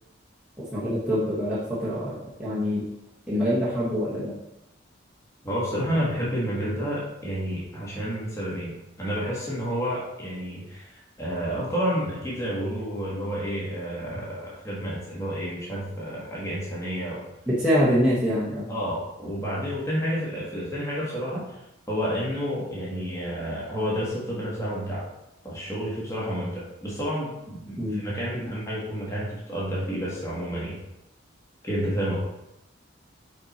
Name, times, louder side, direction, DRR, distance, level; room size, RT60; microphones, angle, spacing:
voice 1, 0.6-2.9 3.3-4.4 17.5-18.7 27.8-28.0 28.3-28.5, equal, 5° right, -10 dB, 1.0 m, -25 dB
voice 2, 5.4-17.2 18.7-21.6 21.9-25.1 25.4-30.8 31.6-32.2, equal, 15° left, -7 dB, 1.5 m, -30 dB
5.1 x 4.3 x 4.2 m, 0.89 s
head